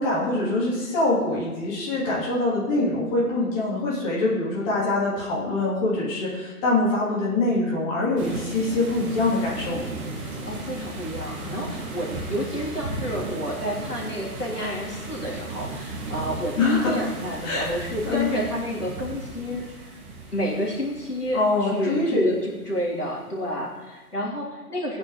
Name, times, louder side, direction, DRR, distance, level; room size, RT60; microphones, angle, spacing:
voice 1, 0.0-9.9 16.6-17.0 17.4-17.7 18.0-18.4 21.3-22.3, left 2 dB, 20° left, -7 dB, 3.1 m, -24 dB
sound 1, 8.2-22.7, right 2 dB, 20° right, 1.3 m, -36 dB
voice 2, 10.2-19.6 20.3-25.0, equal, 80° left, -5 dB, 3.4 m, -30 dB
19.5 x 9.3 x 3.2 m, 1.2 s
figure-of-eight pair, 135°, 46 cm